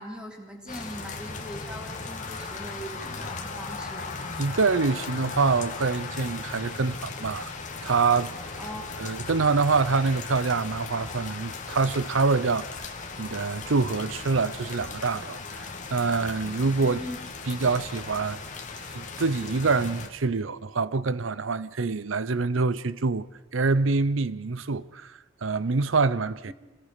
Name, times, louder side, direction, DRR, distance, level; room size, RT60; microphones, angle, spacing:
voice 1, 0.0-4.1 8.6-8.8 16.8-17.2 26.5-26.6, equal, 5° right, 3.5 m, -40 dB
sound 1, 0.7-20.1, left 4 dB, 40° left, 2.1 m, -37 dB
voice 2, 4.4-7.5 7.8-8.3 9.0-12.9 13.2-17.0 17.5-18.4 18.9-23.3 23.5-25.1 25.4-26.5, right 4 dB, 75° right, 0.7 m, -25 dB
26.5 x 18.0 x 6.8 m
head